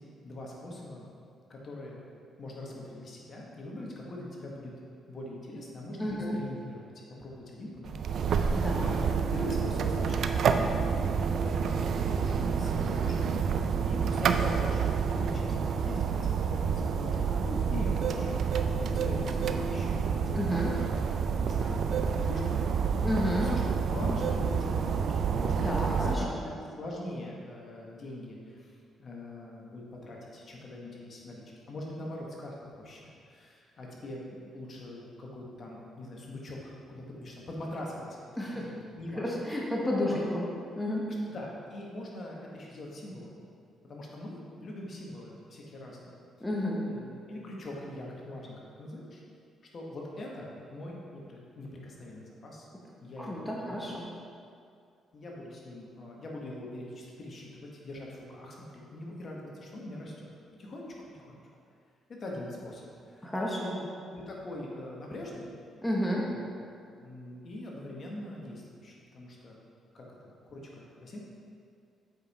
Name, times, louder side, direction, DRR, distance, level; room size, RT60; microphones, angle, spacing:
voice 1, 0.2-1.0 1.5-2.0 2.4-4.7 5.1-6.0 6.3-6.8 7.2-8.2 9.3-10.7 11.3-13.4 13.8-20.8 21.4-21.9 22.1-22.6 22.9-23.6 23.9-25.1 25.4-38.2 38.5-39.7 40.0-40.3 41.3-43.4 43.8-46.2 46.8-49.2 49.7-52.7 53.0-53.9 55.1-60.3 60.6-61.4 62.1-63.2 63.6-63.8 64.1-65.5 66.3-66.5 67.0-69.6 69.9-71.2, left 1 dB, 45° left, -2 dB, 1.5 m, -42 dB
voice 2, 6.0-6.4 8.5-9.0 20.3-20.7 23.0-23.5 25.6-26.2 38.4-38.7 39.1-40.4 40.8-41.0 46.4-46.8 53.3-54.1 63.2-63.7 65.8-66.3, left 1 dB, 10° left, -4 dB, 1.2 m, -31 dB
sound 1, 7.8-26.2, right 6 dB, 65° right, 0.4 m, -28 dB
7.9 x 5.4 x 4.3 m, 2.4 s
cardioid pair, 90°, 0 cm